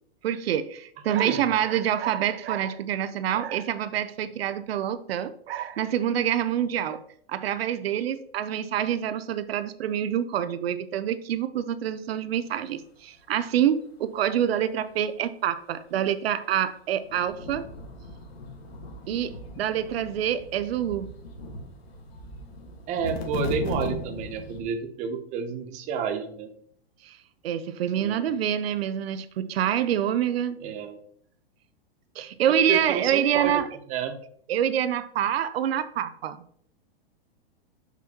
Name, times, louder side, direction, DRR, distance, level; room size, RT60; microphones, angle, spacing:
voice 1, 0.2-7.0 7.3-17.7 19.1-21.1 27.0-27.2 27.4-30.6 32.2-33.7 34.5-36.4, right 10 dB, 80° right, 0.6 m, -26 dB
voice 2, 1.1-1.5 22.9-26.5 28.0-28.3 30.6-31.0 32.7-33.5 33.9-34.2, right 7 dB, 25° right, 0.7 m, -30 dB
sound 1, 16.4-16.5 17.0-24.6, left 2 dB, 85° left, 1.7 m, -38 dB
6.9 x 6.0 x 2.9 m
hypercardioid pair, 145°, 30 cm